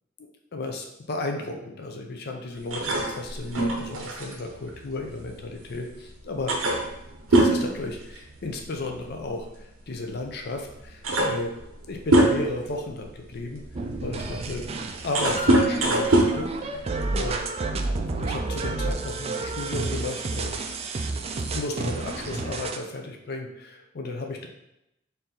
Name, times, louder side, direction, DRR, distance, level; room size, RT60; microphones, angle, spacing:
voice 1, 0.5-6.5 7.3-11.5 11.9-13.6 14.0-14.6 15.0-17.4 17.9-20.5 21.5-24.5, left 2 dB, 50° left, 3 dB, 0.6 m, -34 dB
sound 1, 2.7-5.7 6.0-6.1 6.5-8.6 8.9-9.2 10.2-10.3 10.7-12.7 13.3-17.4, right 1 dB, 75° right, 0.7 m, -24 dB
sound 2, 13.7-22.8, right 3 dB, 30° right, 0.3 m, -30 dB
4.3 x 2.7 x 3.8 m, 0.85 s
head